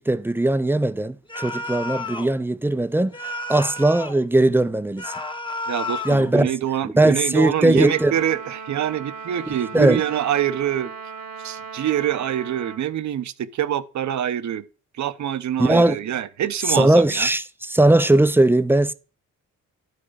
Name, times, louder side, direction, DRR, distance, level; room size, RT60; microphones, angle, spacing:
voice 1, 0.0-3.1 3.5-5.1 6.0-6.5 6.8-8.1 9.5-10.0 15.6-16.0 16.7-18.9, right 1 dB, 5° right, 0.3 m, -19 dB
sound 1, 1.3-2.4 3.1-4.2 5.0-6.3, left 2 dB, 15° left, 0.8 m, -31 dB
voice 2, 5.7-10.9 11.4-14.6 15.0-17.3, right 10 dB, 60° right, 0.7 m, -25 dB
Trumpet, 7.8-12.8, right 5 dB, 75° right, 1.5 m, -37 dB
12.0 x 4.2 x 4.9 m
cardioid pair, 110°, 34 cm